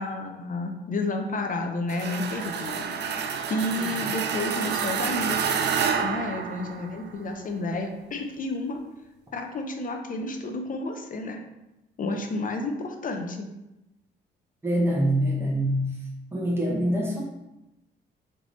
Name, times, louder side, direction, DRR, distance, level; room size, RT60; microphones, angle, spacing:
voice 1, 0.0-2.9 3.5-5.6 6.0-8.8 9.3-11.4 12.0-13.5, left 2 dB, 45° left, 4 dB, 0.7 m, -31 dB
sound 1, 1.9-7.1, right 6 dB, 60° right, 0.5 m, -28 dB
voice 2, 14.6-15.8 16.3-17.2, right 1 dB, 10° right, -4 dB, 1.2 m, -24 dB
3.4 x 3.1 x 4.0 m, 0.94 s
cardioid pair, 90°, 20 cm